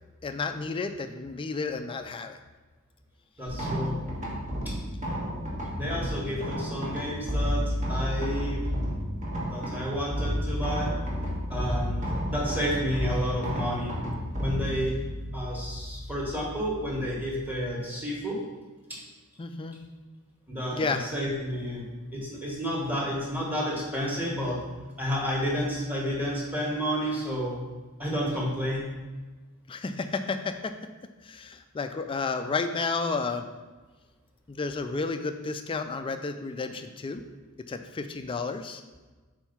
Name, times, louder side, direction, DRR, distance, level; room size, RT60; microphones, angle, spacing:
voice 1, 0.2-2.4 19.4-19.8 20.7-21.0 29.7-30.7 31.2-33.5 34.5-37.2 37.7-38.8, left 4 dB, 25° left, 7 dB, 0.3 m, -31 dB
voice 2, 3.4-3.9 4.6-4.7 5.7-7.6 7.9-8.6 9.4-10.9 11.5-13.9 14.4-15.0 15.3-18.4 18.9-19.0 20.5-21.8 22.1-24.6 25.0-27.6 28.0-28.9, equal, 10° right, -5 dB, 1.5 m, -30 dB
sound 1, 3.5-17.7, equal, 35° right, 1.4 m, -32 dB
4.6 x 4.4 x 5.6 m, 1.3 s
head